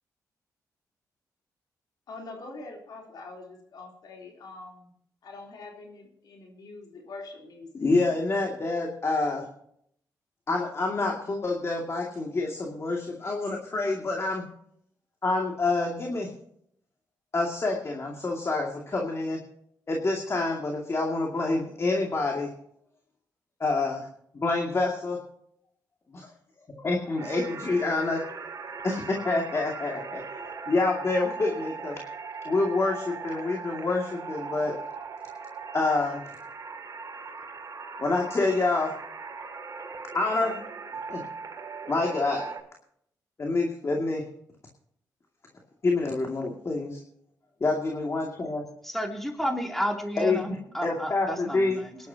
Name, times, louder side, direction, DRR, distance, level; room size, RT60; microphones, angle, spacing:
voice 1, 2.1-4.9 5.2-7.9, left 3 dB, 75° left, 0 dB, 3.5 m, -44 dB
voice 2, 7.7-9.5 10.5-14.5 15.2-16.3 17.3-19.4 19.9-22.5 23.6-24.1 24.3-25.2 26.1-26.3 26.8-28.2 28.8-30.2 30.7-32.0 32.4-34.7 35.7-36.2 38.0-38.9 40.1-40.6 41.1-41.2 41.9-42.5 43.4-44.2 45.8-47.0 47.6-48.6 50.2-51.8, left 3 dB, 40° left, 0 dB, 2.4 m, -27 dB
sound 1, 27.2-42.6, right 5 dB, 55° right, 2.5 m, -39 dB
voice 3, 48.8-52.0, equal, 5° left, 1 dB, 3.2 m, -31 dB
22.0 x 11.5 x 2.9 m, 0.69 s
cardioid pair, 65°, 7 cm